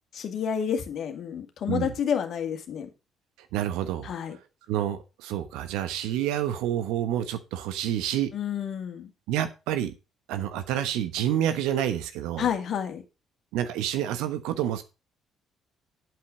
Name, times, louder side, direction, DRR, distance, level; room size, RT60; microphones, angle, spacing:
voice 1, 0.1-2.9 4.0-4.4 8.3-9.1 12.4-13.0, left 8 dB, 55° left, 6 dB, 2.0 m, -29 dB
voice 2, 3.5-4.1 4.7-8.3 9.3-9.9 10.3-12.5 13.5-14.8, right 11 dB, 70° right, 10 dB, 1.2 m, -28 dB
8.6 x 7.7 x 5.2 m, 0.28 s
hypercardioid pair, 50°, 0 cm